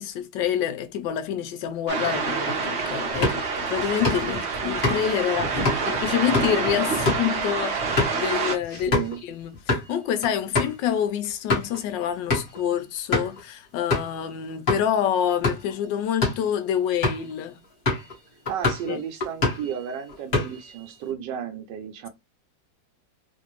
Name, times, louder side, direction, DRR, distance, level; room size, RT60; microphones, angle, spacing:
voice 1, 0.0-5.6 5.9-8.9 9.2-17.6 18.9-19.0, left 9 dB, 80° left, 1.2 m, -27 dB
sound 1, 1.9-8.6, right 5 dB, 50° right, 0.8 m, -27 dB
sound 2, 3.1-9.2 9.5-9.9 10.2-10.3 10.5-10.8 11.2-11.8 12.3-12.6 13.1-13.4 13.9-14.2 14.7-14.8 15.3-15.7 16.1-16.5 17.0-17.3 17.9-18.1 18.5-18.9 19.2-19.7 20.1-20.7, left 3 dB, 30° left, 1.2 m, -26 dB
voice 2, 5.4-6.0 6.9-7.0 8.7-9.2 18.5-22.1, right 8 dB, 75° right, 1.3 m, -33 dB
3.3 x 2.5 x 3.0 m
omnidirectional pair, 2.0 m